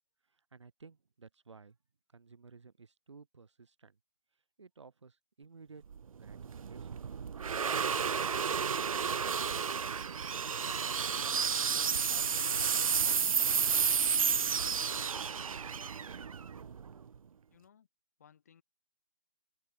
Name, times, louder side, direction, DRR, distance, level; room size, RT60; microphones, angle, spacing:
voice 1, 0.3-1.8 2.1-4.0 4.6-5.8 6.2-6.4 6.7-7.0 7.5-11.1 11.4-12.5 12.8-13.2, right 4 dB, 55° right, 7.9 m, -56 dB
sound 1, 5.9-17.1, right 6 dB, 70° right, 0.5 m, -31 dB
voice 2, 17.5-17.9 18.2-18.6, left 8 dB, 25° left, 7.8 m, -62 dB
hypercardioid pair, 180°, 18 cm